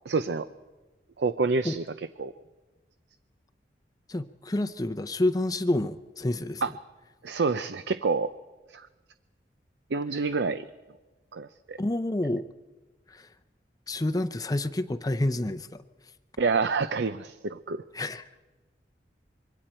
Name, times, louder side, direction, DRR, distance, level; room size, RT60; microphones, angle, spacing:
voice 1, 0.1-0.5 1.2-1.8 2.2-2.3 6.6-6.7 7.2-8.3 8.7-8.9 9.9-10.7 11.3-11.8 16.4-17.8, right 4 dB, 80° right, 12 dB, 0.6 m, -27 dB
voice 2, 4.1-6.6 11.8-12.5 13.1-13.3 13.9-15.8 17.9-18.3, left 1 dB, 20° left, 10 dB, 0.6 m, -28 dB
26.0 x 23.5 x 4.4 m, 1.2 s
head